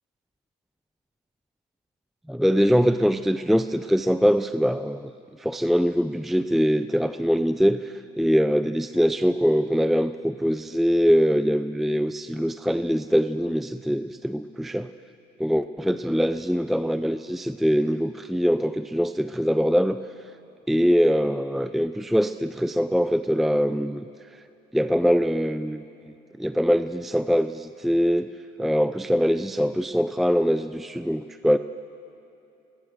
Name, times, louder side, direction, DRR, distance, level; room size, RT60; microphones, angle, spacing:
voice 1, 2.3-5.1 5.4-14.9 15.4-20.0 20.7-24.1 24.7-25.8 26.4-28.3 28.6-31.6, equal, ahead, 11 dB, 0.4 m, -23 dB
25.0 x 20.5 x 6.6 m, 2.7 s
supercardioid pair, 105°, 20 cm